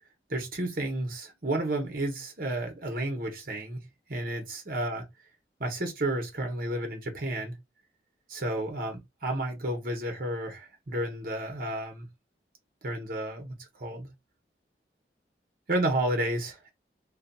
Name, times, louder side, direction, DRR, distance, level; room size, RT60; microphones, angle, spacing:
voice 1, 0.3-5.1 5.6-7.6 8.3-12.1 12.8-14.1 15.7-16.7, right 1 dB, 55° right, 1.0 m, -31 dB
2.6 x 2.6 x 2.6 m
head